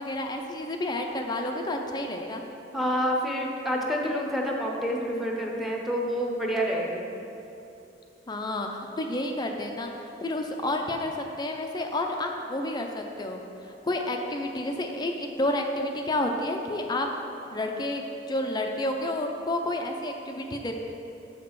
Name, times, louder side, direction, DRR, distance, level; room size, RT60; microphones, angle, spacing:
voice 1, 0.0-2.4 8.3-8.7 9.0-11.1 11.4-17.1 17.5-18.0 18.3-20.7, left 1 dB, 25° left, 3 dB, 0.5 m, -30 dB
voice 2, 2.7-7.1, equal, ahead, -1 dB, 0.9 m, -28 dB
8.2 x 6.0 x 4.7 m, 2.8 s
head